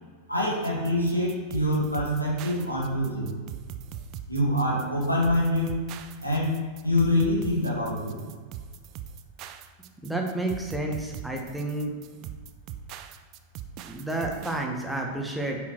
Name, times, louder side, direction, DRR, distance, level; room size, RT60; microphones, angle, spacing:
voice 1, 0.3-3.4 4.3-5.8 6.2-8.2, left 1 dB, 85° left, -3 dB, 1.9 m, -25 dB
sound 1, 0.6-14.6, right 9 dB, 40° right, 0.4 m, -41 dB
voice 2, 10.0-11.9 13.8-15.6, right 2 dB, 5° right, 1 dB, 1.3 m, -30 dB
8.4 x 5.8 x 3.1 m, 1.5 s
figure-of-eight pair, 90°, 0 cm